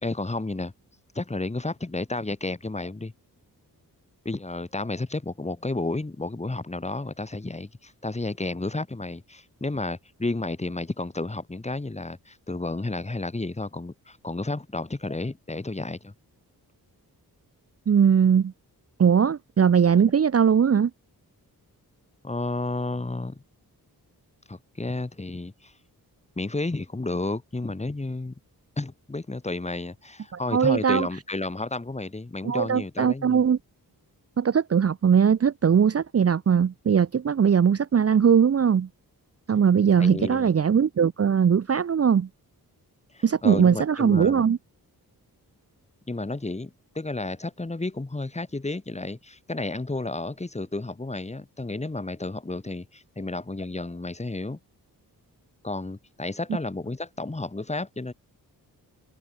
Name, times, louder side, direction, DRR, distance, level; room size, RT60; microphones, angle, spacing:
voice 1, 0.0-0.7 1.1-3.1 4.2-16.1 22.2-23.4 24.5-25.7 26.4-28.4 28.8-33.4 40.0-40.5 43.1-44.4 46.1-54.6 55.6-58.1, left 2 dB, 20° left, 2.3 m, -32 dB
voice 2, 17.9-18.5 19.0-20.9 30.3-31.1 32.4-33.6 34.4-38.9 39.5-42.3 43.2-44.6, right 7 dB, 40° right, 0.7 m, -20 dB
wide cardioid pair, 110°, 37 cm